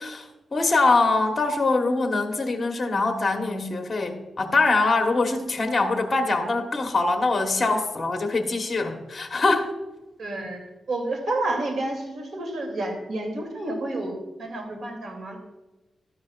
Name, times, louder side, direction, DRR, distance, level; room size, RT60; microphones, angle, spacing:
voice 1, 0.0-9.7, left 3 dB, 30° left, 4 dB, 1.2 m, -23 dB
voice 2, 10.2-10.6 10.9-15.4, right 2 dB, 70° right, 3 dB, 2.5 m, -30 dB
12.5 x 10.5 x 2.4 m, 1.1 s
cardioid pair, 85°, 0 cm